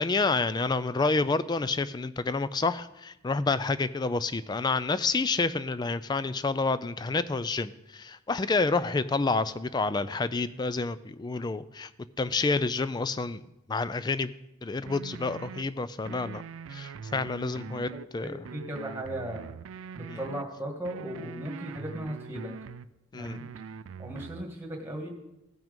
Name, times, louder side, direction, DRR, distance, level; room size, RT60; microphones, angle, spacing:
voice 1, 0.0-11.9 12.2-13.4 13.7-14.3 14.6-16.4 16.7-18.3 20.1-20.2 23.1-23.4, left 3 dB, 20° left, 14 dB, 0.3 m, -29 dB
sound 1, 14.9-15.6 16.0-18.1 18.4-20.4 20.8-22.9 23.2-24.5, right 6 dB, 70° right, 0.4 m, -43 dB
voice 2, 17.7-19.4 19.9-22.5 23.1-23.5 24.0-25.1, right 1 dB, 10° right, 1 dB, 1.7 m, -37 dB
16.0 x 6.1 x 5.2 m, 0.91 s
head